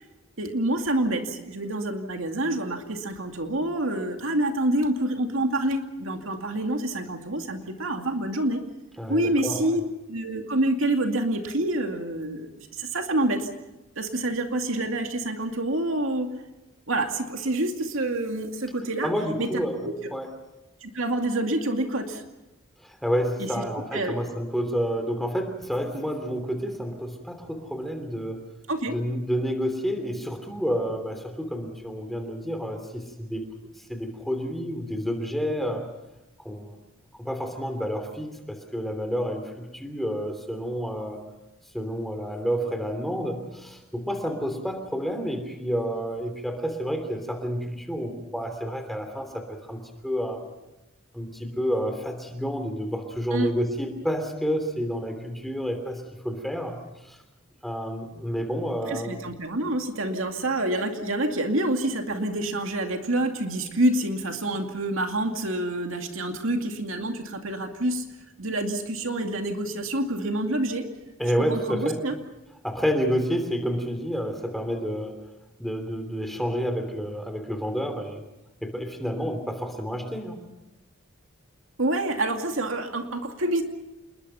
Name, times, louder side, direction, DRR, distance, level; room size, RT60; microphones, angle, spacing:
voice 1, 0.4-8.6 9.1-9.8 10.1-13.5 14.0-16.3 16.9-19.1 19.4-19.9 20.8-22.2 23.4-23.5 23.9-24.1 28.7-28.9 53.3-53.5 58.9-68.0 68.4-70.9 71.5-72.1 81.8-83.6, right 1 dB, 75° right, 4 dB, 2.4 m, -27 dB
voice 2, 9.0-9.7 19.0-20.3 22.8-28.4 28.9-33.5 33.9-35.9 36.4-36.8 37.2-41.2 41.7-50.4 51.1-56.8 57.1-57.2 57.6-59.2 71.2-72.0 72.6-75.2 75.6-78.2 78.6-80.4, equal, ahead, 6 dB, 3.1 m, -29 dB
28.0 x 21.5 x 5.7 m, 0.99 s
head